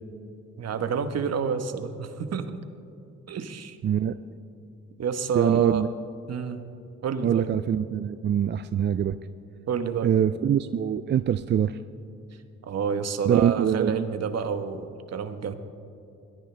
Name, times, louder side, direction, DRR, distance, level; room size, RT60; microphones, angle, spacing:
voice 1, 0.6-2.6 3.3-3.8 5.0-5.8 6.3-6.6 7.0-7.5 9.7-10.1 12.6-15.5, right 6 dB, 55° right, 9 dB, 1.2 m, -29 dB
voice 2, 3.8-4.2 5.3-5.9 7.2-9.2 10.0-11.8 13.3-14.0, right 9 dB, 35° right, 13 dB, 0.4 m, -23 dB
22.5 x 18.0 x 3.4 m, 2.6 s
cardioid pair, 90°, 30 cm